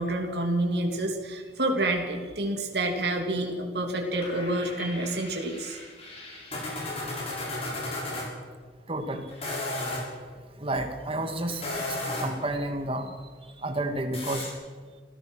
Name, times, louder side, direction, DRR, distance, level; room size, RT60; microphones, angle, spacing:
voice 1, 0.0-5.8, right 1 dB, 65° right, 2 dB, 2.7 m, -28 dB
sound 1, 4.1-8.3 9.3-10.0 11.5-12.4 14.1-14.5, left 2 dB, 35° left, 6.6 m, -35 dB
voice 2, 8.9-9.3 10.6-11.8 12.2-13.1 13.6-14.5, right 1 dB, 30° right, 6 dB, 2.2 m, -30 dB
27.0 x 16.0 x 6.4 m, 1.5 s
head